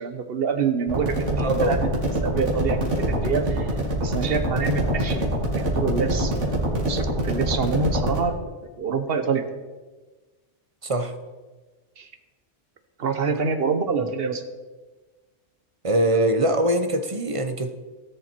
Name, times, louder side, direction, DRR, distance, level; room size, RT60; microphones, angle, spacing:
voice 1, 0.0-1.8 2.2-5.2 5.5-9.4 12.0-12.1 13.0-14.4, right 5 dB, 55° right, 8 dB, 1.2 m, -26 dB
sound 1, 0.9-8.2, right 1 dB, 85° right, 2.7 m, -25 dB
voice 2, 1.4-1.7 4.6-4.7 10.8-11.1 14.0-14.1 15.8-17.7, right 1 dB, 30° right, 8 dB, 0.8 m, -23 dB
17.0 x 7.0 x 4.5 m, 1.3 s
omnidirectional pair, 1.2 m